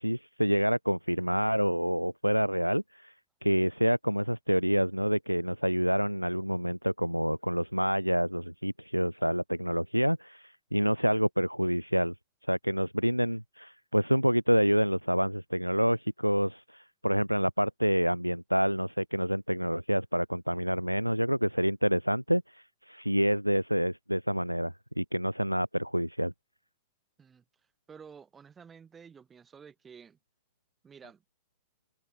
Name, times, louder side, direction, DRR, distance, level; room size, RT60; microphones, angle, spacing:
voice 1, 0.0-3.1 3.4-12.1 12.5-26.3, equal, 90° right, 0.3 m, -28 dB
voice 2, 27.9-30.2 30.8-31.2, right 6 dB, 20° right, 6.3 m, -51 dB
figure-of-eight pair, 90°, 0 cm